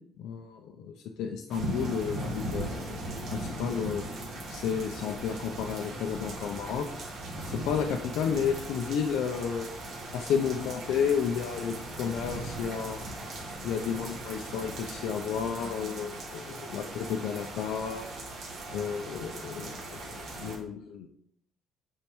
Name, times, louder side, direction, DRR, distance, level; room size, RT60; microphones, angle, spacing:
voice 1, 0.2-3.0 3.3-4.0 4.5-6.9 7.5-9.7 10.1-13.0 13.6-18.1 18.7-21.1, left 7 dB, 75° left, 3 dB, 0.6 m, -32 dB
sound 1, 1.5-20.6, right 1 dB, 50° right, 1.9 m, -39 dB
8.7 x 4.4 x 3.1 m, 0.66 s
cardioid pair, 175°, 0 cm